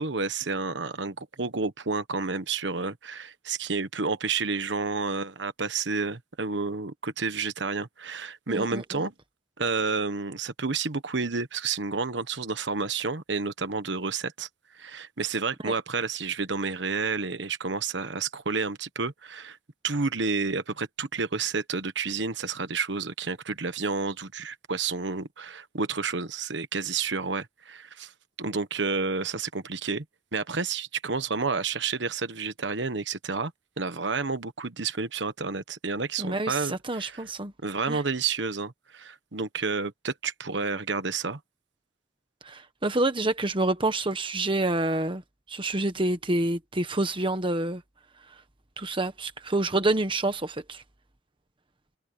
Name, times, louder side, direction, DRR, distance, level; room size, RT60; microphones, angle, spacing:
voice 1, 0.0-9.1 9.6-14.5 14.7-19.6 19.8-28.1 28.4-30.0 30.3-33.5 33.8-37.2 37.6-41.4, right 4 dB, 65° right, 1.3 m, -30 dB
voice 2, 8.5-9.1 15.6-15.7 36.2-37.5 37.9-38.0 42.4-45.2 45.5-47.8 48.8-50.8, right 2 dB, 25° right, 1.3 m, -27 dB
head